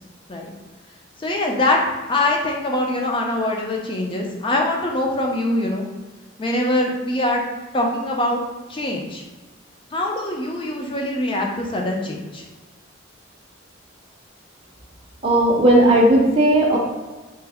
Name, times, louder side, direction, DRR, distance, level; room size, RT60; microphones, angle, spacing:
voice 1, 1.2-1.8 2.1-5.9 6.4-7.4 7.7-8.4 8.7-9.2 9.9-12.5, left 1 dB, 25° left, 0 dB, 0.4 m, -23 dB
voice 2, 15.2-16.8, right 1 dB, 30° right, -3 dB, 0.5 m, -15 dB
3.2 x 2.0 x 3.4 m, 1.3 s
head